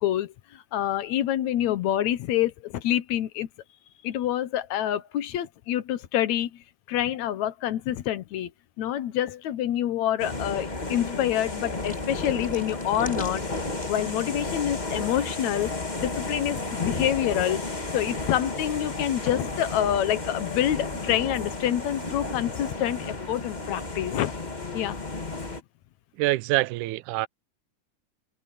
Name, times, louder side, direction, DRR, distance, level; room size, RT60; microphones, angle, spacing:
voice 1, 0.0-3.5 4.0-8.5 8.8-15.7 16.0-24.3 24.7-25.0, left 11 dB, 75° left, 2.2 m, -27 dB
sound 1, 10.2-25.6, left 2 dB, 20° left, 1.2 m, -33 dB
sound 2, 11.7-15.0 15.3-15.7 16.5-16.7, equal, ahead, 3.8 m, -47 dB
voice 2, 26.2-27.3, right 19 dB, 85° right, 2.1 m, -25 dB
omnidirectional pair, 3.5 m